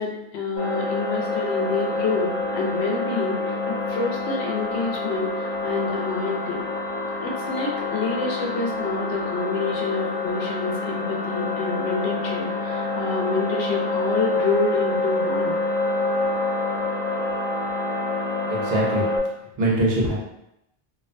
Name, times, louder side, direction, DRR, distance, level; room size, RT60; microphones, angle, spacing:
voice 1, 0.0-6.6 7.2-15.6, left 3 dB, 85° left, 0 dB, 0.8 m, -28 dB
sound 1, 0.6-19.2, left 2 dB, 30° left, 0.7 m, -27 dB
voice 2, 18.4-19.1 19.6-20.1, right 1 dB, 75° right, -3 dB, 0.9 m, -22 dB
2.5 x 2.1 x 2.5 m, 0.81 s
omnidirectional pair, 1.0 m